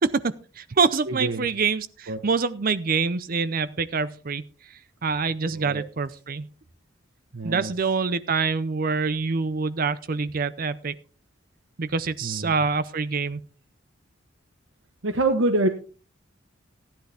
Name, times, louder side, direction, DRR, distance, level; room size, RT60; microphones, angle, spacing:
voice 1, 0.0-6.5 7.4-11.0 11.8-13.4, right 4 dB, 45° right, 14 dB, 0.6 m, -26 dB
voice 2, 1.1-1.5 2.1-2.2 5.5-5.9 7.3-7.7 12.2-12.5 15.0-15.7, right 2 dB, 80° right, 6 dB, 1.2 m, -25 dB
15.5 x 10.5 x 3.4 m, 0.37 s
head